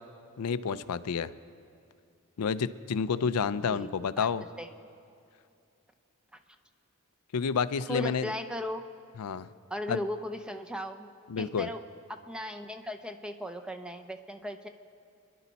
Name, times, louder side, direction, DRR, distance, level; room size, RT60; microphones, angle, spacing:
voice 1, 0.4-1.3 2.4-4.4 7.3-8.3 9.2-9.5 9.9-10.0 11.3-11.7, left 6 dB, 90° left, 13 dB, 0.5 m, -29 dB
voice 2, 3.6-3.9 4.2-4.3 4.6-4.7 7.9-8.8 9.7-11.1 11.4-11.8 12.1-14.7, equal, 5° right, 6 dB, 0.7 m, -37 dB
29.0 x 11.0 x 4.1 m, 2.5 s
head